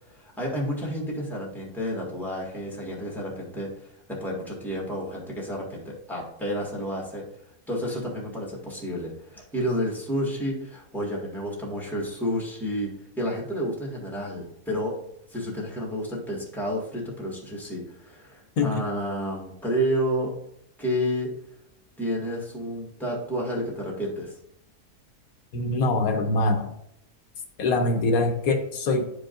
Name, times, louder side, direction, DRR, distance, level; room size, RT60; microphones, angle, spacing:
voice 1, 0.1-7.2 7.7-14.9 15.3-20.3 20.8-21.3 22.0-24.3, equal, ahead, -3 dB, 1.7 m, -30 dB
voice 2, 25.5-26.7 27.6-29.0, left 2 dB, 80° left, 4 dB, 1.3 m, -23 dB
10.5 x 4.9 x 2.5 m, 0.78 s
omnidirectional pair, 1.5 m